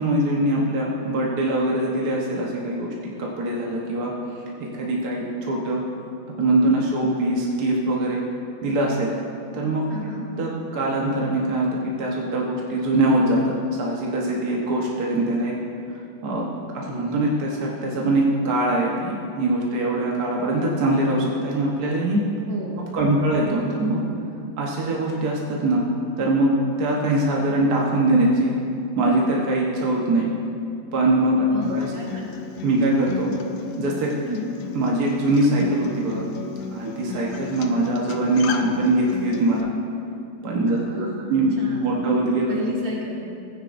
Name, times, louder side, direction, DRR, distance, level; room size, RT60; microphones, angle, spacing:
voice 1, 0.0-2.9 3.2-4.1 4.6-5.8 6.4-8.2 8.6-9.1 9.5-9.8 10.4-11.7 12.0-15.5 16.2-16.4 16.7-22.2 22.9-24.0 24.6-25.8 26.2-26.5 26.8-28.5 29.0-30.3 30.9-31.9 32.6-33.3 33.8-34.1 34.7-36.2 36.7-39.7 40.4-41.5 41.8-42.5, right 1 dB, 60° right, -3 dB, 1.6 m, -22 dB
voice 2, 9.9-10.3 22.5-22.8 23.0-23.4 31.5-32.4 34.2-34.5 40.7-42.0 42.5-43.2, left 1 dB, 80° right, -5 dB, 2.7 m, -33 dB
Acoustic guitar, 31.6-39.6, left 6 dB, 85° left, 1.4 m, -34 dB
15.5 x 9.7 x 2.6 m, 2.5 s
omnidirectional pair, 2.0 m